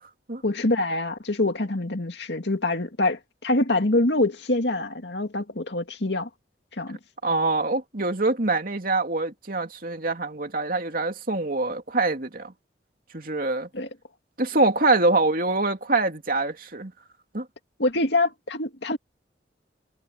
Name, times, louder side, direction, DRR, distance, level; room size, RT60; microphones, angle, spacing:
voice 1, 0.4-6.3 6.8-7.0 13.7-13.9 17.8-19.0, left 2 dB, 75° left, 2.2 m, -25 dB
voice 2, 7.2-12.5 13.1-13.7 14.4-16.9 17.3-17.5, right 2 dB, 50° right, 2.7 m, -24 dB
head